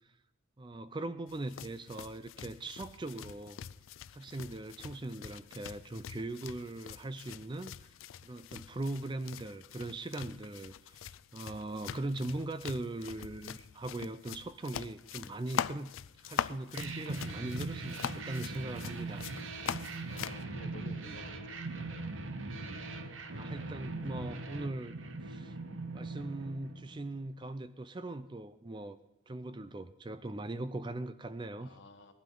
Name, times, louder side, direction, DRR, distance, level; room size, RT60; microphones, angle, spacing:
voice 1, 0.6-3.6 4.1-7.9 8.2-15.9 16.2-19.2 23.3-25.0 25.2-25.6 25.9-29.0 29.3-31.7, right 2 dB, 25° right, 13 dB, 0.4 m, -40 dB
sound 1, 1.3-20.4, left 8 dB, 80° left, 0.4 m, -43 dB
sound 2, 16.7-27.3, right 3 dB, 75° right, 1.0 m, -41 dB
voice 2, 20.1-21.6 31.6-32.1, left 2 dB, 65° left, 6 dB, 1.3 m, -51 dB
18.5 x 12.0 x 3.9 m, 0.85 s
head